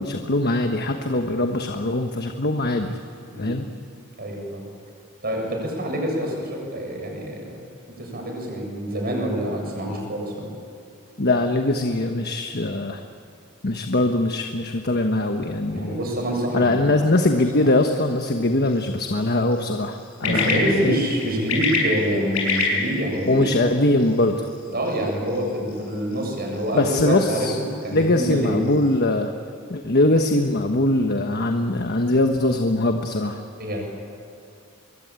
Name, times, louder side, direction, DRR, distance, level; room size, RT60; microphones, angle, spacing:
voice 1, 0.0-3.0 3.4-3.7 11.2-13.0 13.6-16.0 16.5-21.0 23.3-24.5 26.7-27.6 27.9-29.3 29.7-33.4, left 2 dB, 50° left, 5 dB, 1.3 m, -22 dB
voice 2, 4.2-4.6 5.2-7.6 8.0-10.5 15.7-17.1 20.2-23.7 24.7-28.6 33.6-33.8, equal, 45° right, 1 dB, 7.3 m, -26 dB
sound 1, 17.4-29.0, left 3 dB, 85° left, 6.9 m, -31 dB
25.0 x 22.5 x 9.0 m, 2.6 s
head